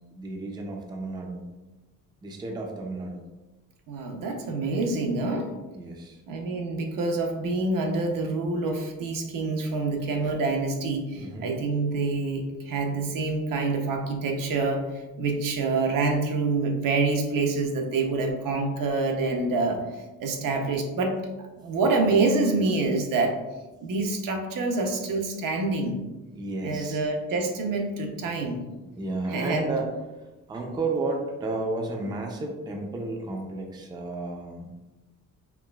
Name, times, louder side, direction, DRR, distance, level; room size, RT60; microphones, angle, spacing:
voice 1, 0.1-1.4 2.2-3.2 5.7-6.2 8.7-8.8 11.1-11.5 26.3-27.0 28.2-28.5 28.8-29.9 30.5-34.9, right 2 dB, 15° right, 1 dB, 0.3 m, -32 dB
voice 2, 3.9-5.5 6.3-14.8 15.2-19.8 20.2-21.2 21.6-23.3 23.8-26.0 26.6-28.6 29.3-29.7, right 3 dB, 80° right, 2 dB, 0.7 m, -26 dB
4.7 x 3.2 x 2.3 m, 1.1 s
wide cardioid pair, 170°, 33 cm